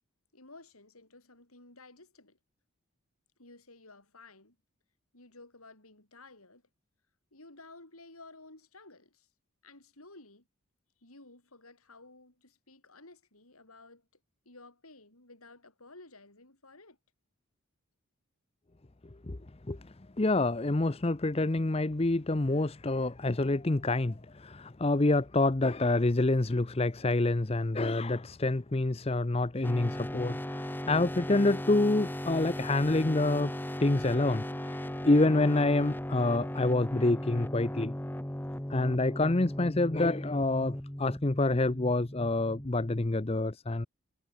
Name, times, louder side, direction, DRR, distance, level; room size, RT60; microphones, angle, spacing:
voice 1, 0.3-2.4 3.4-4.6 5.1-6.6 7.3-9.3 9.6-10.5 11.0-14.1 14.5-17.0, left 2 dB, 85° left, 7.2 m, -54 dB
voice 2, 20.2-33.5 33.8-34.8 35.0-37.9 38.7-43.9, left 2 dB, 25° left, 0.7 m, -27 dB
sound 1, 29.6-43.2, left 1 dB, 10° left, 1.1 m, -37 dB
head